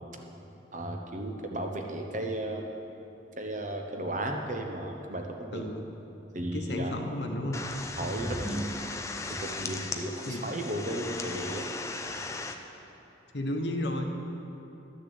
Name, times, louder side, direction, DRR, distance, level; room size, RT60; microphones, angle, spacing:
voice 1, 0.7-2.7 3.4-5.6 6.3-7.1 8.0-8.7 9.4-11.6, right 1 dB, 40° right, 3 dB, 1.0 m, -34 dB
voice 2, 5.5-5.9 6.5-7.6 10.3-10.5 13.3-14.0, left 1 dB, 65° left, 3 dB, 1.1 m, -33 dB
sound 1, 7.5-12.5, left 2 dB, 15° left, 0.5 m, -36 dB
11.5 x 6.8 x 7.8 m, 3.0 s
head